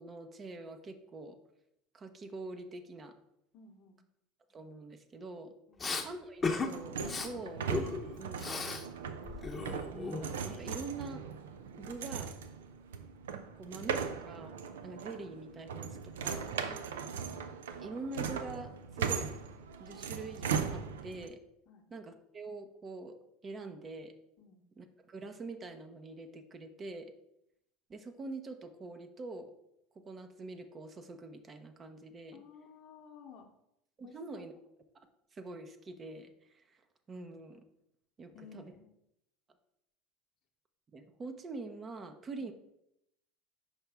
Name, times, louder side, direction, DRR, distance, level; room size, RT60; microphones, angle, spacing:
voice 1, 0.0-1.4 1.9-3.1 4.5-5.5 6.0-7.6 8.2-8.6 9.9-11.2 11.8-12.4 13.5-16.6 17.8-19.4 19.8-21.4 21.9-23.2 23.4-24.1 24.8-27.1 27.9-29.5 29.9-32.4 34.0-34.5 35.3-36.8 37.1-37.6 38.2-38.7 40.9-42.5, right 3 dB, 30° right, 7 dB, 0.7 m, -45 dB
voice 2, 3.5-4.0 5.7-5.9 16.7-17.1 21.7-21.9 24.4-24.6 32.3-33.5 34.0-34.5 38.3-38.9 42.4-42.5, left 6 dB, 55° left, -3 dB, 0.9 m, -55 dB
Respiratory sounds, 5.8-6.1 6.4-6.7 7.0-7.3 7.7-8.8 9.1-10.5, left 4 dB, 25° left, 0.8 m, -36 dB
sound 1, 6.7-21.3, right 6 dB, 90° right, 0.4 m, -39 dB
5.7 x 4.8 x 3.4 m, 0.80 s
hypercardioid pair, 90°, 0 cm